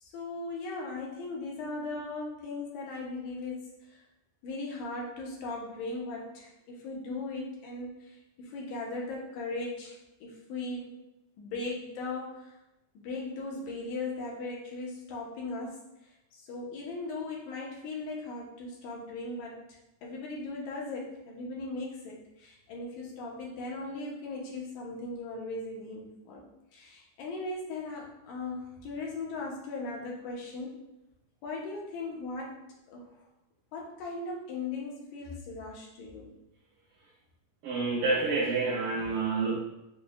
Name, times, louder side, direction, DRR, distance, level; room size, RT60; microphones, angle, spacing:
voice 1, 0.0-4.0 4.4-10.9 11.4-12.5 13.0-15.8 16.3-19.6 20.0-26.4 26.7-30.8 31.4-32.6 32.9-33.1 33.7-36.3, left 3 dB, 80° left, -2 dB, 1.9 m, -38 dB
voice 2, 37.6-39.6, right 3 dB, 80° right, -5 dB, 2.2 m, -28 dB
6.0 x 2.1 x 2.3 m, 0.92 s
omnidirectional pair, 3.7 m